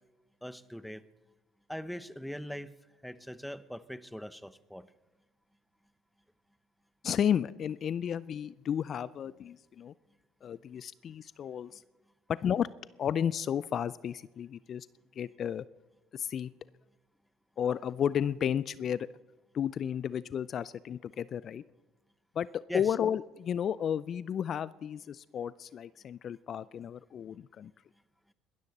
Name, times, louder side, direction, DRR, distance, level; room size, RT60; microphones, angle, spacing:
voice 1, 0.4-1.0 1.7-2.7 3.0-4.9 22.7-22.9, equal, ahead, 16 dB, 0.8 m, -41 dB
voice 2, 7.0-9.9 10.4-11.8 12.3-12.7 13.0-14.9 15.2-15.6 16.1-16.5 17.6-19.1 19.5-21.6 22.4-27.7, left 9 dB, 50° left, 19 dB, 0.4 m, -32 dB
21.5 x 12.5 x 4.1 m, 1.1 s
hypercardioid pair, 65°, 0 cm